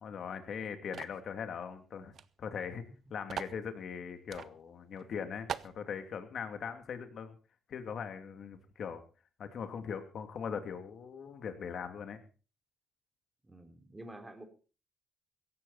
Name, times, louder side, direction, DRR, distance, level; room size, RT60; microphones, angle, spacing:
voice 1, 0.0-2.1 2.4-2.8 3.1-7.4 7.7-9.0 9.4-12.2, left 7 dB, 60° left, 7 dB, 2.8 m, -40 dB
sound 1, 0.9-1.2 2.1-2.3 2.5-2.6 3.3-3.6 4.3-4.5 5.0-5.1 5.5-5.8, right 8 dB, 55° right, 0.8 m, -40 dB
voice 2, 13.4-14.4, right 1 dB, 15° right, 6 dB, 3.6 m, -49 dB
17.0 x 14.5 x 4.3 m, 0.36 s
cardioid pair, 90°, 0 cm